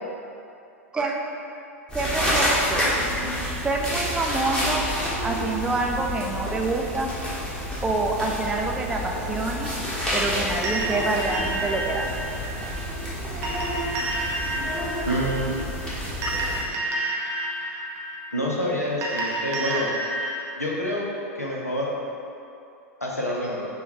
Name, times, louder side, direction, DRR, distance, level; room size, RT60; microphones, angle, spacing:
sound 1, 1.9-16.6, equal, 10° left, 1.1 m, -29 dB
voice 1, 1.9-2.8 3.6-4.8 5.2-7.1 7.8-9.7 10.1-12.1, right 3 dB, 10° right, 0 dB, 0.4 m, -26 dB
sound 2, 10.6-20.4, right 2 dB, 35° right, 0.9 m, -30 dB
voice 2, 15.1-15.7 18.3-19.9 20.6-21.1 21.3-21.9 23.0-23.7, equal, 90° left, -3 dB, 0.7 m, -27 dB
6.8 x 2.3 x 3.0 m, 2.6 s
figure-of-eight pair, 90°, 8 cm